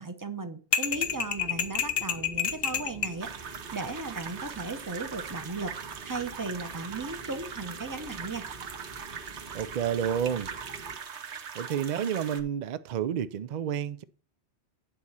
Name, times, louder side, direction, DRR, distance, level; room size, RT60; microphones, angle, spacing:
voice 1, 0.0-3.3 3.7-5.7 6.1-8.4, right 3 dB, 20° right, 0.7 m, -36 dB
sound 1, 0.7-3.2, left 8 dB, 60° left, 1.0 m, -28 dB
sound 2, 0.8-11.0, right 2 dB, 35° right, 1.7 m, -48 dB
sound 3, 3.2-12.4, right 7 dB, 75° right, 1.2 m, -41 dB
voice 2, 9.5-10.5 11.5-14.0, right 8 dB, 55° right, 0.5 m, -30 dB
8.9 x 4.2 x 6.1 m
omnidirectional pair, 1.2 m